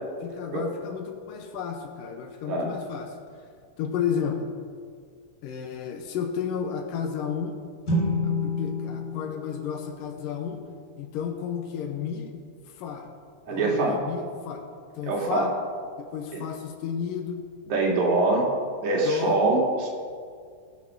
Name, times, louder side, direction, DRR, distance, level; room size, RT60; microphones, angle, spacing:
voice 1, 0.2-3.4 3.8-4.5 5.4-7.6 8.2-10.7 11.0-12.4 12.7-13.1 13.5-14.6 15.0-15.5 16.0-17.4 18.9-19.4, left 7 dB, 90° left, 4 dB, 2.7 m, -32 dB
sound 1, 7.9-11.4, left 2 dB, 25° left, 2.1 m, -30 dB
voice 2, 13.5-14.0 15.1-15.5 17.7-18.5 18.8-19.9, right 2 dB, 60° right, -2 dB, 3.4 m, -23 dB
19.5 x 6.5 x 6.1 m, 2.1 s
omnidirectional pair, 3.8 m